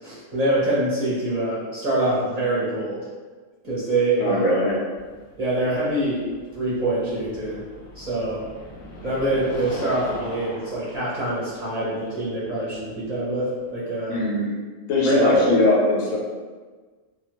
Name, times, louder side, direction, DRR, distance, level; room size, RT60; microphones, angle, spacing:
voice 1, 0.0-3.0 3.6-4.4 5.4-6.3 6.5-7.6 7.9-8.4 9.0-14.2 15.0-15.5, right 2 dB, 40° right, -9 dB, 0.6 m, -24 dB
voice 2, 4.2-4.7 14.1-14.4 14.9-16.2, left 2 dB, 85° left, -3 dB, 1.1 m, -20 dB
sound 1, 4.9-13.8, left 2 dB, 65° left, 0.9 m, -40 dB
2.3 x 2.2 x 2.9 m, 1.4 s
omnidirectional pair, 1.3 m